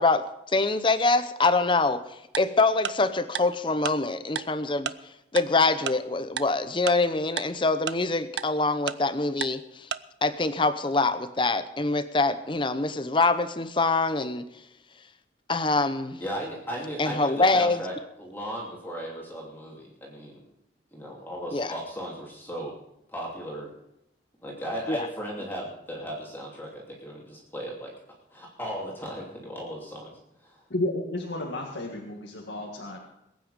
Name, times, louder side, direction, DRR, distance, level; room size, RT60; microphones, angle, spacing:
voice 1, 0.0-2.0 2.4-4.9 5.3-9.9 10.2-14.5 15.5-16.2 17.0-17.8 21.5-21.8 24.9-25.1, left 3 dB, 25° left, 12 dB, 0.8 m, -24 dB
Tick-tock, 2.3-2.4 2.8-2.9 3.3-3.4 3.8-3.9 4.4-4.5 4.9-5.0 5.4-5.5 5.9-6.0 6.4-6.5 6.9-7.0 7.4-7.5 7.9-8.0 8.4-8.5 8.9-9.0 9.4-9.5 9.9-10.0, right 8 dB, 70° right, 0.5 m, -30 dB
voice 2, 16.2-17.9 18.2-20.4 20.9-22.7 23.1-23.7 24.4-27.9 28.3-30.1 30.4-30.6, equal, 10° left, -3 dB, 2.8 m, -36 dB
voice 3, 30.7-33.0, left 1 dB, 90° left, 0 dB, 1.8 m, -32 dB
21.0 x 9.2 x 5.1 m, 0.83 s
head